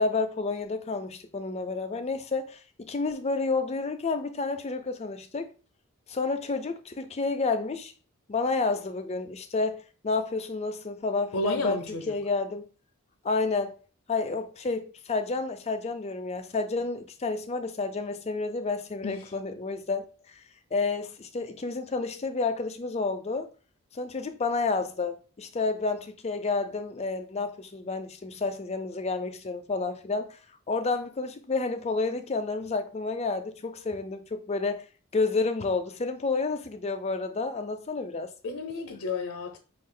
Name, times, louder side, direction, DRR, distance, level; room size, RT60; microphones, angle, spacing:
voice 1, 0.0-5.5 6.1-7.9 8.3-11.8 12.1-12.7 13.2-13.8 14.1-20.3 20.7-23.5 23.9-30.4 30.7-34.8 35.1-38.3, left 3 dB, 30° left, 0.4 m, -30 dB
voice 2, 11.3-12.1 19.0-19.3 38.4-39.6, left 3 dB, 80° left, 0.6 m, -32 dB
5.1 x 2.3 x 3.7 m
head